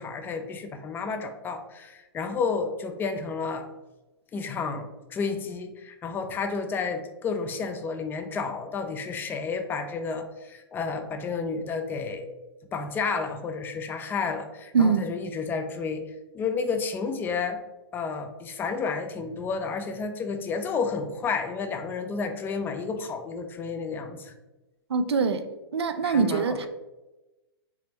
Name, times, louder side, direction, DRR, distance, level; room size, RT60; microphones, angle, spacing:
voice 1, 0.0-3.7 4.3-12.3 12.7-16.1 16.3-17.6 17.9-24.3 26.0-26.7, left 5 dB, 15° left, 7 dB, 0.3 m, -31 dB
voice 2, 14.7-15.1 24.9-25.4 25.7-26.7, right 5 dB, 90° right, 9 dB, 0.4 m, -23 dB
3.5 x 3.2 x 2.9 m, 1.1 s
hypercardioid pair, 125°, 13 cm